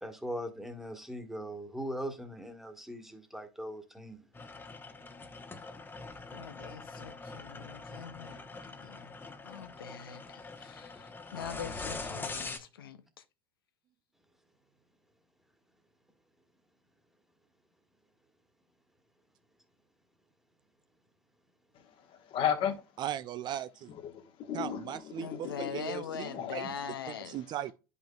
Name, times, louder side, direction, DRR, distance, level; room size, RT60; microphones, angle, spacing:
voice 1, 0.0-4.2, equal, 5° right, 1.4 m, -40 dB
sound 1, 4.3-12.6, left 3 dB, 20° left, 0.9 m, -43 dB
voice 2, 6.3-9.1 9.4-13.0 25.2-27.4, left 8 dB, 85° left, 0.6 m, -43 dB
voice 3, 22.3-22.8 24.0-25.7 26.2-26.6, left 8 dB, 50° left, 1.2 m, -34 dB
voice 4, 23.0-23.9 24.5-26.7 27.3-27.7, right 11 dB, 40° right, 0.4 m, -38 dB
10.0 x 5.5 x 2.3 m
hypercardioid pair, 85°, 12 cm